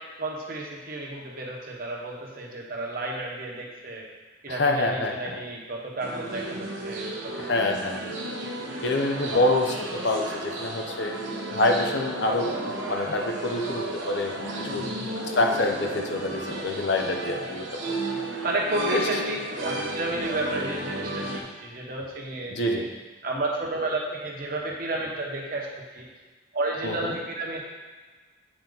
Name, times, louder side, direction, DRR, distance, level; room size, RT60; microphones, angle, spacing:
voice 1, 0.2-4.0 4.4-7.8 14.6-15.2 18.4-22.9 23.2-26.1 26.5-27.6, right 2 dB, 45° right, -2 dB, 1.1 m, -32 dB
voice 2, 4.5-5.4 7.4-8.2 8.8-11.2 11.5-14.9 15.3-18.3 18.9-19.1 22.5-22.9 26.8-27.2, left 2 dB, 60° left, 3 dB, 0.7 m, -26 dB
sound 1, 6.0-21.4, right 1 dB, 75° right, 1.0 m, -33 dB
8.8 x 4.3 x 3.9 m, 1.3 s
head